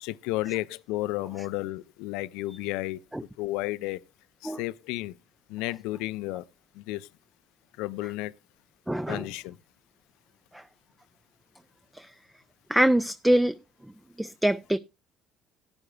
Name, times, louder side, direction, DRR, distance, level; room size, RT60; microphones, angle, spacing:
voice 1, 0.0-3.0 3.4-4.0 4.4-5.1 5.5-6.4 6.8-7.1 7.8-8.3 9.1-9.6, left 18 dB, 70° left, 0.4 m, -32 dB
voice 2, 8.9-9.3 10.5-10.6 11.9-12.1 12.7-13.6 14.2-14.8, right 1 dB, 5° right, 0.5 m, -24 dB
17.5 x 9.6 x 2.3 m
hypercardioid pair, 60°, 0 cm